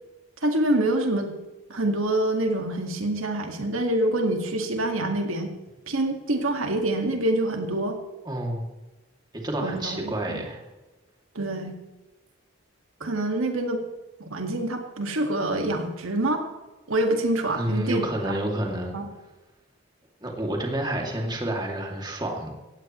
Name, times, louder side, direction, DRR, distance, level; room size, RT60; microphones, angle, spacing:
voice 1, 0.4-1.3 1.7-5.5 5.9-8.0 9.6-10.4 11.4-11.7 13.0-13.8 14.2-16.4 16.9-18.3 18.9-19.0, right 1 dB, 80° right, 3 dB, 2.0 m, -26 dB
voice 2, 8.2-8.7 9.3-10.6 17.5-19.0 20.2-22.5, right 1 dB, 20° right, 0 dB, 2.6 m, -29 dB
18.0 x 15.5 x 3.2 m, 1.1 s
head